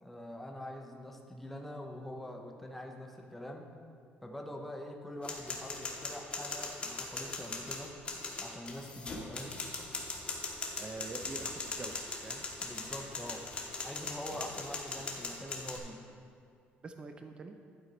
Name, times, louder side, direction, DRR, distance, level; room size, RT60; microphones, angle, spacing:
voice 1, 0.0-3.7 4.2-8.0 8.4-9.6 12.6-13.4 13.8-16.0, left 1 dB, 5° left, 1 dB, 0.7 m, -44 dB
sound 1, 5.2-15.8, left 3 dB, 30° left, 1.1 m, -40 dB
voice 2, 10.8-12.5 14.3-14.5 16.8-17.6, right 3 dB, 25° right, 6 dB, 0.4 m, -45 dB
11.0 x 4.4 x 3.9 m, 2.3 s
cardioid pair, 140°, 4 cm